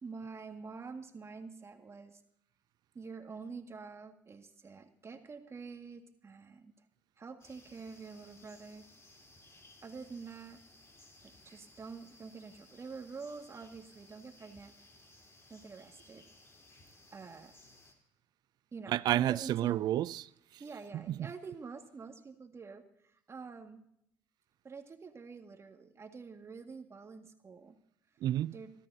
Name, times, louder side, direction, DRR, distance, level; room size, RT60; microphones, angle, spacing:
voice 1, 0.0-2.2 2.9-6.7 7.2-8.9 9.8-10.6 11.2-14.7 15.5-16.3 17.1-17.5 18.7-19.8 20.6-23.9 24.6-27.8 28.5-28.7, right 5 dB, 35° right, 2.0 m, -47 dB
sound 1, 7.4-17.9, left 2 dB, 35° left, 3.8 m, -60 dB
voice 2, 18.9-20.6 21.1-21.2 28.2-28.5, right 13 dB, 60° right, 0.4 m, -31 dB
26.5 x 13.0 x 2.8 m
hypercardioid pair, 65°, 8 cm